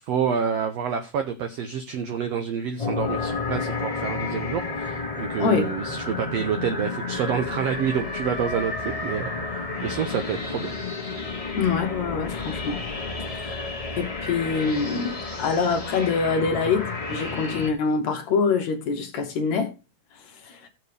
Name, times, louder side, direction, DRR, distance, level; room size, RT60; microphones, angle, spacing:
voice 1, 0.1-10.7, right 7 dB, 80° right, 1.4 m, -28 dB
sound 1, 2.8-17.7, left 3 dB, 20° left, 1.0 m, -31 dB
voice 2, 5.4-5.7 11.6-12.8 13.3-13.7 14.0-15.1 15.4-19.7 20.4-20.7, left 5 dB, 70° left, 1.9 m, -25 dB
16.5 x 6.7 x 3.4 m
omnidirectional pair, 3.9 m